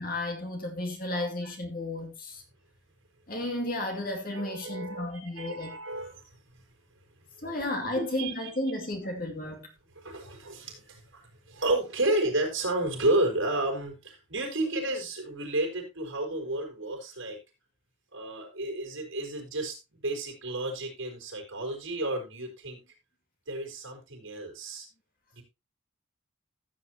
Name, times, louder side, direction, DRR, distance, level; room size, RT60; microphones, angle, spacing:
voice 1, 0.0-2.4 3.3-5.7 7.4-9.7, left 1 dB, 45° left, 2.5 m, -33 dB
voice 2, 1.1-1.5 4.3-6.6 6.9-7.4 8.2-8.5 9.9-17.4 18.1-22.8 23.5-24.9 25.3-25.4, right 2 dB, 80° right, 4.8 m, -32 dB
14.5 x 8.1 x 2.9 m
head